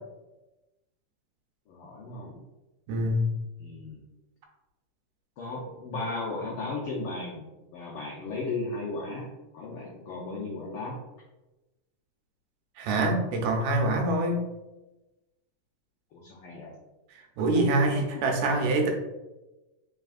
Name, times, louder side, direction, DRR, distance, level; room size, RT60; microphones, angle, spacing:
voice 1, 1.7-2.4 3.6-4.0 5.4-7.5 7.7-11.0 16.1-16.7, left 3 dB, 85° left, -3 dB, 1.2 m, -35 dB
voice 2, 2.9-3.3 12.8-14.4 17.1-18.9, right 2 dB, 80° right, 2 dB, 2.0 m, -25 dB
4.2 x 3.6 x 2.4 m, 1.0 s
omnidirectional pair, 3.3 m